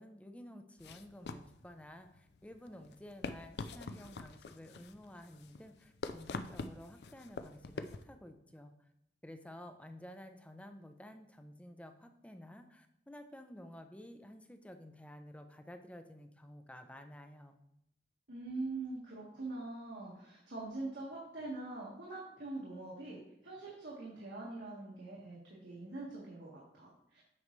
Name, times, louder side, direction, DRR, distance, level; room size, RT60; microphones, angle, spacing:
voice 1, 0.0-8.9 9.2-17.6, left 1 dB, 10° left, 6 dB, 0.5 m, -52 dB
sound 1, 0.8-8.0, left 3 dB, 65° left, 0.4 m, -45 dB
voice 2, 18.3-27.2, right 2 dB, 75° right, -6 dB, 1.7 m, -43 dB
8.5 x 5.4 x 3.1 m, 0.79 s
head